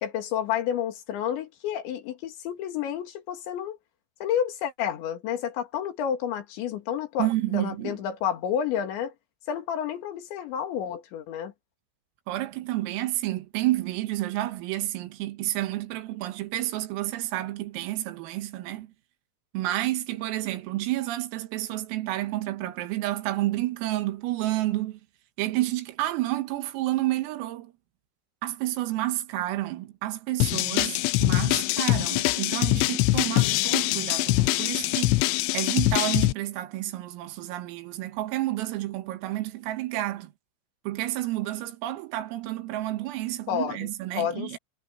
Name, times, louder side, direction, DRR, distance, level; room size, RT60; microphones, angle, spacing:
voice 1, 0.0-3.8 4.2-9.1 9.5-11.5 43.5-43.9 44.2-44.6, left 9 dB, 65° left, 4.5 m, -30 dB
voice 2, 7.2-8.0 12.3-18.9 19.5-25.0 25.4-27.7 28.4-40.3 40.9-44.6, right 16 dB, 85° right, 4.2 m, -30 dB
sound 1, 30.4-36.3, left 22 dB, 90° left, 2.6 m, -23 dB
omnidirectional pair, 5.9 m